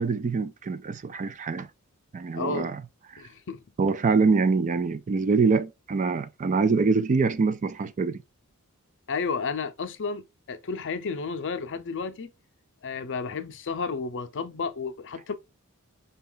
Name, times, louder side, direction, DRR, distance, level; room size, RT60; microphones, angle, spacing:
voice 1, 0.0-1.7 2.1-2.8 3.1-3.2 3.8-8.2, right 4 dB, 35° right, 0.4 m, -24 dB
voice 2, 2.3-2.7 3.2-3.6 9.1-12.3 12.8-15.3, left 5 dB, 60° left, 0.6 m, -32 dB
5.3 x 2.3 x 3.8 m
head